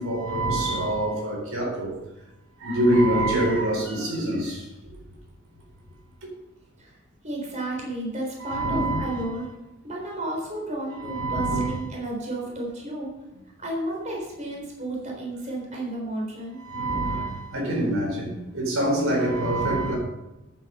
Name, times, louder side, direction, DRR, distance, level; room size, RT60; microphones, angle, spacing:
voice 1, 0.0-2.0 2.6-4.6 8.4-9.3 11.0-11.8 16.6-19.9, right 1 dB, 75° right, 0 dB, 4.2 m, -25 dB
voice 2, 7.2-9.5 9.8-13.1 13.6-16.6, right 1 dB, 35° right, -1 dB, 3.9 m, -32 dB
10.5 x 10.0 x 5.7 m, 0.98 s
head